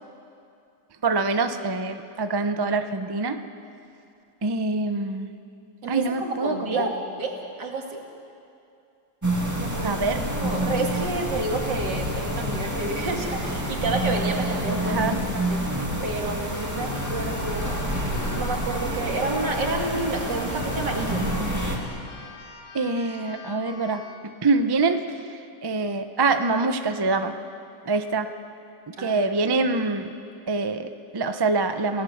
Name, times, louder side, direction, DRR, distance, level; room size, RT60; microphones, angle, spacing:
voice 1, 1.0-3.4 4.4-5.3 5.9-6.9 9.8-10.2 14.8-15.2 22.7-27.3 27.9-28.3 28.9-30.1 30.5-32.0, right 3 dB, 30° right, 8 dB, 0.4 m, -25 dB
voice 2, 5.8-8.0 9.6-10.0 10.4-15.0 15.5-15.6 16.0-17.8 18.3-21.2 29.0-29.2, right 2 dB, 75° right, 1 dB, 3.1 m, -29 dB
sound 1, 9.2-21.8, right 1 dB, 10° right, 2.3 m, -28 dB
Keyboard (musical), 16.5-24.3, left 4 dB, 85° left, 2.8 m, -44 dB
28.0 x 17.0 x 7.3 m, 2.6 s
omnidirectional pair, 1.9 m